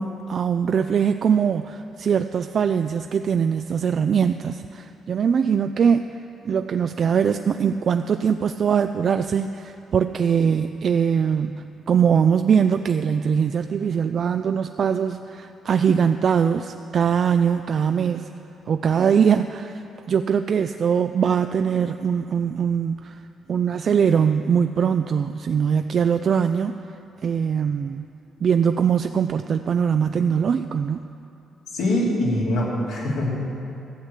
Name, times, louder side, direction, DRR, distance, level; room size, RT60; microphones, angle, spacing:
voice 1, 0.0-6.2 6.4-18.3 18.7-23.2 23.5-26.8 27.2-28.1 28.4-31.0, right 7 dB, 55° right, 8 dB, 0.3 m, -22 dB
voice 2, 31.7-33.3, left 1 dB, 90° left, -4 dB, 2.9 m, -23 dB
14.0 x 6.5 x 8.2 m, 2.7 s
cardioid pair, 90°, 0 cm